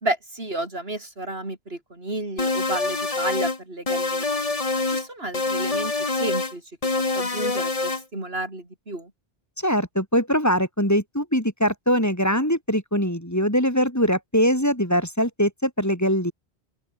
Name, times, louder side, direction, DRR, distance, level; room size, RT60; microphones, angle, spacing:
voice 1, 0.0-4.3 4.9-6.6 7.0-9.1, right 2 dB, 70° right, 5.2 m, -31 dB
sound 1, 2.4-3.6 3.9-5.1 5.3-6.5 6.8-8.0, left 3 dB, 35° left, 1.7 m, -25 dB
voice 2, 9.6-16.3, equal, 15° left, 4.7 m, -22 dB
open air
omnidirectional pair, 1.1 m